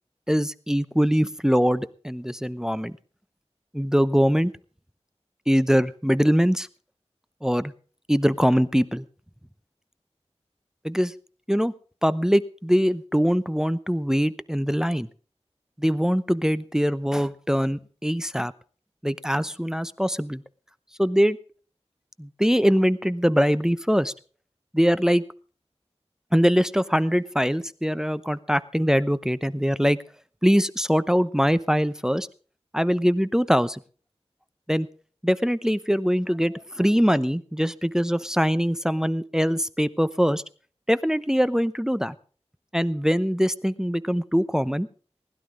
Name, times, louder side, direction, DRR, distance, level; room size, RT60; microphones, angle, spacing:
voice 1, 0.3-2.9 3.7-4.5 5.5-6.7 7.4-7.7 8.1-9.0 10.8-11.1 11.5-11.7 12.0-15.1 15.8-18.5 19.0-20.4 21.0-21.4 22.2-24.1 24.7-25.2 26.3-30.0 30.4-32.3 32.7-33.8 34.7-34.9 35.2-40.4 40.9-42.1 42.7-44.9, equal, 5° right, 14 dB, 0.7 m, -22 dB
20.0 x 11.5 x 3.8 m, 0.41 s
wide cardioid pair, 45°, 11 cm